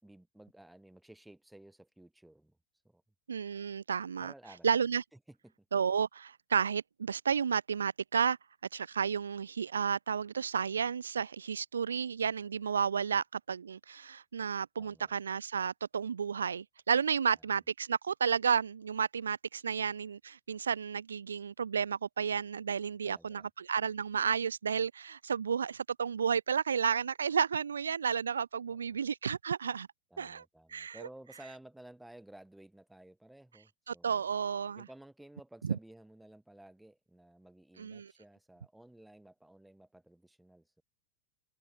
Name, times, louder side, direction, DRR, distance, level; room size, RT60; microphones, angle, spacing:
voice 1, 0.0-2.6 2.8-3.0 4.2-4.8 5.3-5.7 14.8-15.1 17.3-17.4 23.0-23.5 28.7-29.0 30.1-34.3 34.7-40.8, right 1 dB, 5° right, 3.5 m, -55 dB
voice 2, 3.3-4.3 4.6-5.0 5.7-8.4 8.7-29.9 30.2-30.4 30.7-31.0 33.9-34.8 35.6-35.8 37.8-38.1, right 7 dB, 70° right, 0.4 m, -32 dB
figure-of-eight pair, 90°, 0 cm